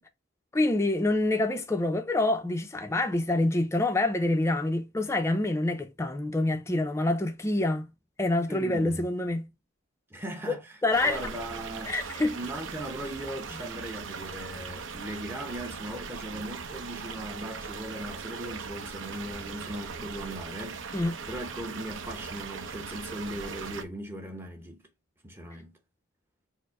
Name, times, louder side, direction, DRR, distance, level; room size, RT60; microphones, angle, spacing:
voice 1, 0.5-7.9 8.2-9.5 10.5-10.6 10.8-11.2 11.9-12.4 20.9-21.2, left 2 dB, 15° left, 0.4 m, -26 dB
voice 2, 8.5-9.0 10.1-11.9 12.3-21.0 21.3-24.8 25.2-25.7, right 1 dB, 10° right, 0.7 m, -39 dB
sound 1, 10.9-23.8, right 5 dB, 70° right, 0.6 m, -39 dB
4.6 x 2.0 x 4.6 m
head